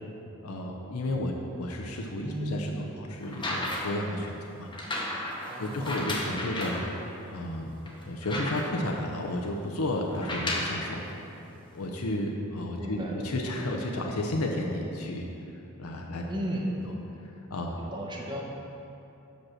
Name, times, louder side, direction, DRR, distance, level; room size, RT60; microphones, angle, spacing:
voice 1, 0.4-4.7 5.6-6.8 7.3-7.8 8.1-11.1 11.7-15.3 15.8-16.4 17.5-17.8, left 1 dB, 80° left, 1 dB, 0.7 m, -32 dB
voice 2, 2.2-2.6 5.5-6.0 12.8-13.3 16.3-16.9 17.8-18.4, equal, 20° right, -1 dB, 0.9 m, -34 dB
sound 1, 3.2-4.0 4.7-6.9 7.4-7.5 7.8-8.9 10.1-10.8 11.7-11.8, left 1 dB, 20° left, 0.9 m, -33 dB
5.9 x 5.2 x 6.3 m, 2.8 s
head